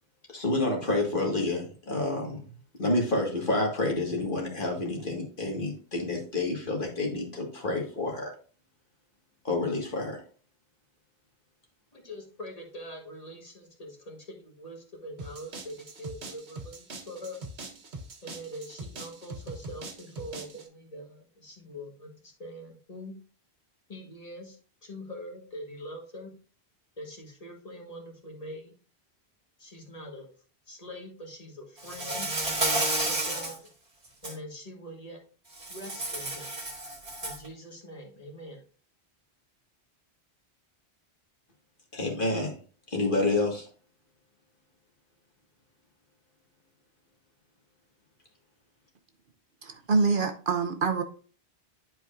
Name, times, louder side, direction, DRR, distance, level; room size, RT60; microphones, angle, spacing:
voice 1, 0.3-2.4 2.8-8.3 9.4-10.2 41.9-42.6 42.9-43.7, left 2 dB, 50° left, 2.0 m, -29 dB
voice 2, 11.9-17.5 18.2-23.2 23.9-24.6 24.8-26.3 27.0-28.7 29.6-30.3 30.7-32.3 33.0-33.7 34.2-35.2 35.7-36.5 37.2-38.6, equal, 35° left, 1.6 m, -43 dB
sound 1, 15.2-20.7, right 2 dB, 75° right, 1.5 m, -42 dB
Insect, 31.8-33.6 34.0-34.3 35.6-37.5, right 1 dB, 40° right, 2.0 m, -31 dB
voice 3, 49.6-51.0, right 4 dB, 55° right, 0.8 m, -25 dB
10.5 x 4.7 x 2.5 m
omnidirectional pair, 1.1 m